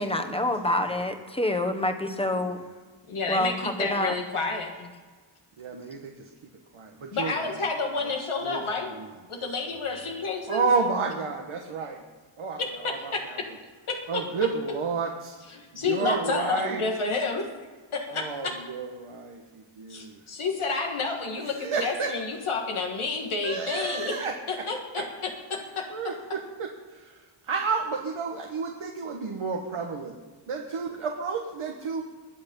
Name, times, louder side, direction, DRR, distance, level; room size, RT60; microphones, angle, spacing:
voice 1, 0.0-2.6 3.3-4.1 9.9-10.1, left 1 dB, 10° left, 6 dB, 1.4 m, -27 dB
voice 2, 2.2-2.5 5.6-6.3 6.7-7.6 8.0-8.1 8.4-9.1 10.5-12.0 12.4-13.4 14.1-15.4 15.7-16.8 18.1-20.2 21.5-22.1 23.4-24.6 25.0-25.1 25.9-30.2 30.5-32.0, right 4 dB, 80° right, 1 dB, 1.5 m, -31 dB
voice 3, 3.1-4.9 7.1-8.9 9.3-10.7 12.6-13.5 13.9-14.2 15.6-17.5 17.9-18.5 19.9-24.2 24.5-25.9, left 4 dB, 85° left, 1 dB, 1.9 m, -30 dB
21.5 x 8.0 x 5.5 m, 1.4 s
wide cardioid pair, 95°, 49 cm